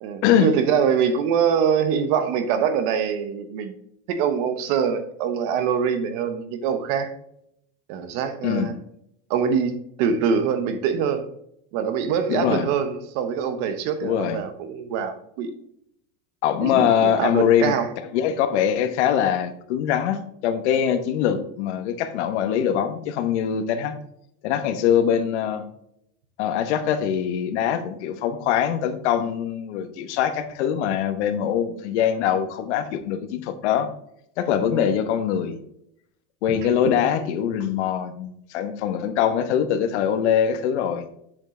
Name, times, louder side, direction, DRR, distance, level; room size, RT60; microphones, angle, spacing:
voice 1, 0.0-3.8 4.1-7.1 7.9-8.8 9.3-11.3 11.7-15.5 16.6-17.9 31.4-31.5 34.7-34.8, right 7 dB, 45° right, 9 dB, 0.9 m, -24 dB
voice 2, 12.3-12.7 14.0-14.4 16.4-24.0 24.4-25.6 26.4-33.9 34.4-35.6 36.4-41.1, left 9 dB, 75° left, 10 dB, 1.1 m, -23 dB
7.3 x 5.3 x 3.7 m, 0.74 s
supercardioid pair, 175°, 34 cm